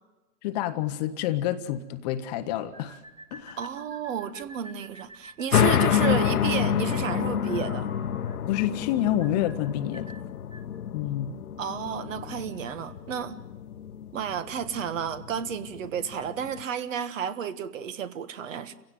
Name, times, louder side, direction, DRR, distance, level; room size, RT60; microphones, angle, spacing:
voice 1, 0.4-3.0 3.3-3.6 8.5-10.1 10.9-11.3, left 12 dB, 25° left, 0.9 m, -28 dB
sound 1, 2.7-10.8, right 1 dB, 10° right, 2.2 m, -49 dB
voice 2, 3.6-7.9 11.6-13.4 14.1-18.7, right 8 dB, 50° right, 1.6 m, -32 dB
sound 2, 5.5-16.6, left 9 dB, 60° left, 1.2 m, -28 dB
30.0 x 16.5 x 9.4 m
hypercardioid pair, 135°, 49 cm